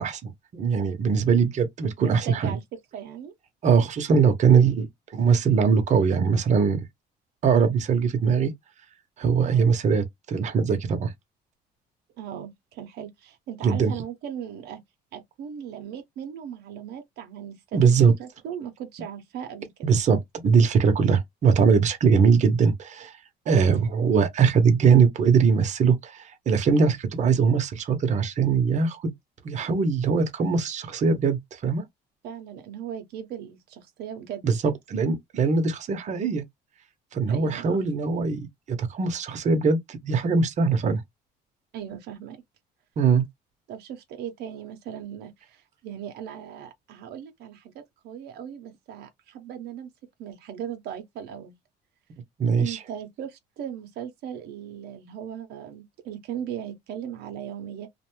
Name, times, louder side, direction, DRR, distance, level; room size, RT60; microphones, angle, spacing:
voice 1, 0.0-2.6 3.6-4.9 5.1-6.8 7.4-8.5 9.2-11.1 13.6-13.9 17.7-18.1 19.8-23.1 23.5-29.1 29.4-31.8 34.4-34.6 34.9-36.4 37.1-41.0 43.0-43.2 52.4-52.8, right 5 dB, 45° right, 0.7 m, -21 dB
voice 2, 2.0-2.6 2.9-3.3 9.4-9.7 12.2-14.8 15.1-19.9 23.4-23.7 32.2-34.7 37.3-37.8 41.7-42.4 43.7-49.9 50.2-51.5 52.6-57.9, right 9 dB, 75° right, 0.7 m, -38 dB
2.5 x 2.1 x 3.0 m
cardioid pair, 110°, 17 cm